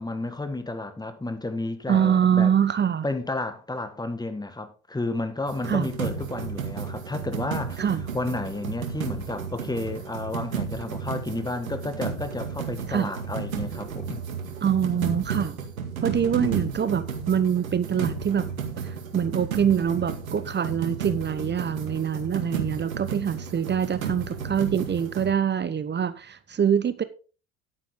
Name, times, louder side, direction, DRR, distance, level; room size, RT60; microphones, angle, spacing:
voice 1, 0.0-2.5 3.0-7.8 8.1-14.2 16.4-16.7, left 2 dB, 10° left, 1.8 m, -32 dB
voice 2, 1.9-3.0 5.7-5.9 7.8-8.0 12.9-13.1 14.6-15.7 16.0-18.5 18.8-27.0, right 8 dB, 25° right, 1.0 m, -24 dB
sound 1, 5.5-25.3, right 6 dB, 80° right, 2.1 m, -33 dB
10.5 x 9.3 x 3.8 m
hypercardioid pair, 70°, 41 cm